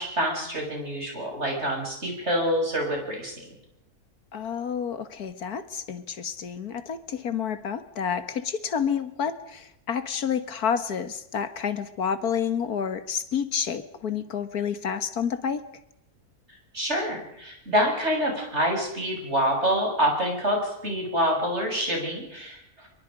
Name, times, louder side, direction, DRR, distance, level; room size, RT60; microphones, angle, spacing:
voice 1, 0.0-3.4 16.7-22.9, equal, 45° right, 1 dB, 7.3 m, -26 dB
voice 2, 4.3-15.7, left 7 dB, 75° left, 12 dB, 2.0 m, -29 dB
24.5 x 24.0 x 5.2 m, 0.79 s
omnidirectional pair, 1.6 m